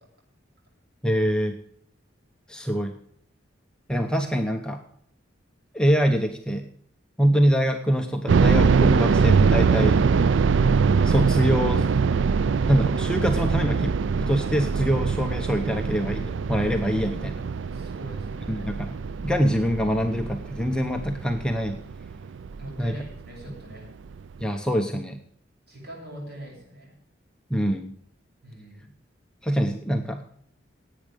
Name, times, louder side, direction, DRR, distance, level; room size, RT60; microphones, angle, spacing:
voice 1, 1.0-1.6 2.5-3.0 3.9-4.8 5.7-6.7 7.2-10.0 11.0-11.9 12.7-17.4 18.5-19.0 19.2-21.8 22.8-23.0 24.4-25.2 27.5-28.0 29.4-30.2, equal, 5° left, 3 dB, 0.9 m, -24 dB
sound 1, 8.3-23.1 23.4-23.5 24.1-24.4, right 5 dB, 70° right, 0.4 m, -23 dB
voice 2, 17.7-18.7 22.6-23.9 25.7-26.9 28.4-28.9, equal, 55° right, -2 dB, 7.4 m, -42 dB
17.0 x 8.9 x 5.2 m, 0.69 s
head